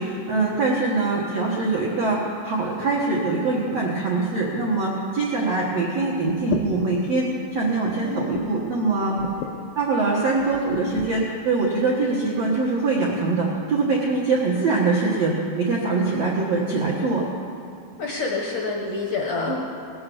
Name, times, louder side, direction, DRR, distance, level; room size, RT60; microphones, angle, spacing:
voice 1, 0.0-2.2 2.4-9.2 9.7-17.3 19.5-19.6, right 3 dB, 80° right, -5 dB, 1.4 m, -23 dB
sound 1, 6.3-7.1 7.6-7.8 8.3-8.7 9.2-9.6 10.3-11.1, left 7 dB, 90° left, 3.2 m, -31 dB
voice 2, 8.0-8.5 18.0-19.6, left 3 dB, 75° left, -1 dB, 1.9 m, -27 dB
18.5 x 7.8 x 7.1 m, 2.5 s
omnidirectional pair, 5.4 m